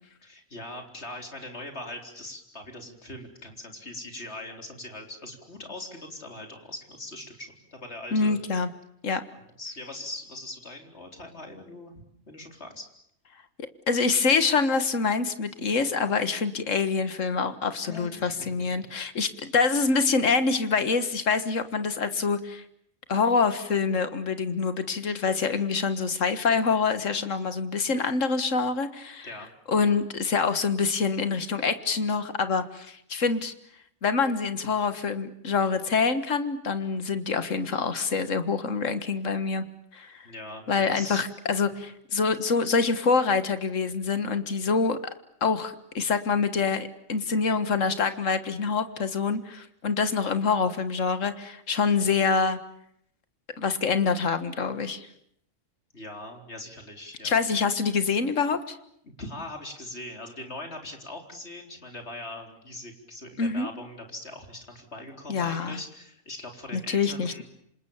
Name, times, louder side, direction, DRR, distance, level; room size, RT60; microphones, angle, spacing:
voice 1, 0.2-8.4 9.3-12.9 17.9-18.5 29.2-29.5 40.2-41.2 41.6-41.7 55.9-57.4 59.0-67.4, left 1 dB, 55° left, 3 dB, 4.3 m, -41 dB
voice 2, 8.1-8.7 9.0-9.2 13.9-22.6 23.1-29.3 29.7-33.5 34.0-39.6 39.9-40.2 40.7-45.0 45.4-52.6 53.6-55.1 57.2-58.8 63.4-63.7 65.3-65.8 66.7-67.4, left 5 dB, 75° left, 10 dB, 1.9 m, -26 dB
28.0 x 26.5 x 7.2 m, 0.71 s
omnidirectional pair, 1.3 m